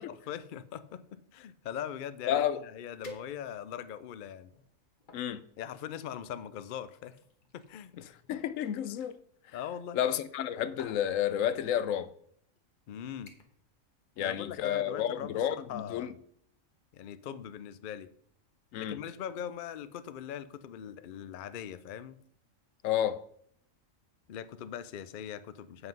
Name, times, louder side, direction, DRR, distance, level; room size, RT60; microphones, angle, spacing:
voice 1, 0.0-4.5 5.6-7.2 7.5-7.9 9.5-10.0 12.9-13.3 14.2-16.2 16.9-18.1 18.8-22.2 24.3-25.9, left 9 dB, 60° left, 0.5 m, -41 dB
voice 2, 2.3-2.6 5.1-5.4 8.3-9.2 9.9-12.1 14.2-16.1 18.7-19.0 22.8-23.2, left 10 dB, 75° left, 1.0 m, -30 dB
sound 1, 3.0-3.8 4.4-5.3 6.2-9.1 10.2-10.5 10.8-11.1 12.0-12.1 12.6-12.8 13.3-13.7 14.0-14.3 14.7-14.8, left 1 dB, 40° left, 1.3 m, -53 dB
7.9 x 7.8 x 5.3 m
omnidirectional pair, 1.4 m